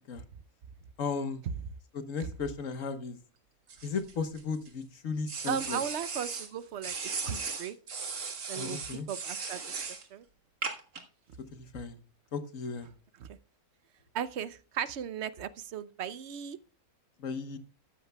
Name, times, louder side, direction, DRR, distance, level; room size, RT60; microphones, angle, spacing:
voice 1, 1.0-1.4 1.9-3.2 3.8-5.8 8.6-9.1 11.5-12.0 12.3-12.9 17.2-17.6, left 5 dB, 65° left, 1.4 m, -35 dB
sound 1, 3.7-4.7 5.3-6.5 6.8-10.0 10.6-11.0, right 5 dB, 80° right, 2.2 m, -37 dB
voice 2, 5.5-6.9 7.2-7.8 8.5-9.6 10.1-10.2 13.2-13.3 14.1-16.6, right 8 dB, 60° right, 0.8 m, -36 dB
13.5 x 11.5 x 2.3 m
omnidirectional pair, 1.5 m